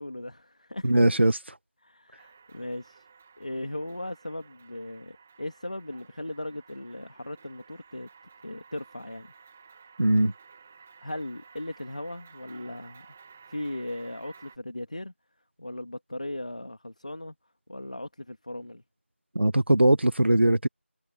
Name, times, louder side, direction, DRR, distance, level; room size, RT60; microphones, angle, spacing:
voice 1, 0.0-1.0 1.8-3.1 3.4-8.1 8.4-9.3 11.0-13.1 13.5-15.1 15.6-17.3 17.7-18.8, left 1 dB, 35° left, 2.5 m, -37 dB
voice 2, 0.8-1.4 10.0-10.3 19.3-20.7, right 1 dB, 60° right, 1.3 m, -20 dB
sound 1, 2.2-14.6, right 5 dB, 5° right, 2.3 m, -54 dB
figure-of-eight pair, 180°, 7 cm